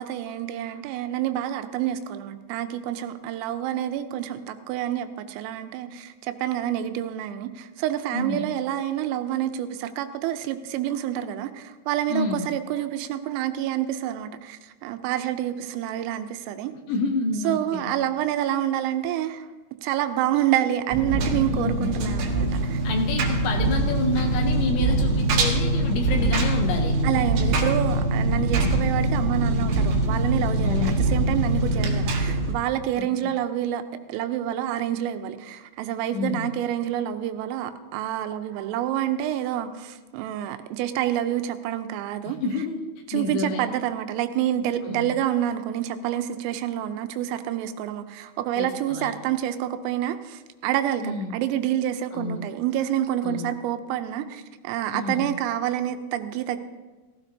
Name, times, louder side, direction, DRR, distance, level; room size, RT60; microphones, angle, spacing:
voice 1, 0.0-16.7 17.4-19.4 19.8-22.8 27.0-33.8 34.1-42.4 43.1-56.6, right 11 dB, 85° right, 9 dB, 3.3 m, -28 dB
voice 2, 8.1-8.5 12.1-12.5 16.9-17.9 21.5-22.0 22.8-27.0 30.6-31.0 33.0-33.3 36.1-36.5 42.2-42.8 43.1-43.7 44.9-45.1 48.6-49.1 51.0-51.4 52.1-52.4 53.2-53.5 54.9-55.3, left 3 dB, 75° left, 4 dB, 2.9 m, -29 dB
Engine, 20.9-32.5, right 2 dB, 65° right, 2.4 m, -23 dB
15.5 x 15.0 x 2.7 m, 1.3 s
omnidirectional pair, 5.9 m